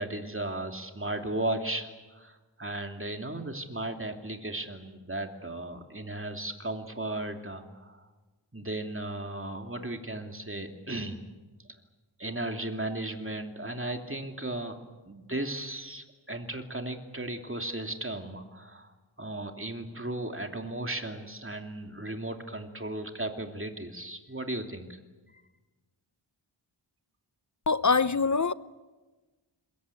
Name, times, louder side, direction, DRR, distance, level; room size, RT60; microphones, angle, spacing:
voice 1, 0.0-8.1 8.5-11.2 12.2-14.8 15.1-18.9 19.2-25.0 25.3-25.4, right 1 dB, 25° right, 2.8 m, -36 dB
voice 2, 27.7-28.5, left 4 dB, 35° left, 0.8 m, -24 dB
26.0 x 22.0 x 8.5 m
wide cardioid pair, 45°, 48 cm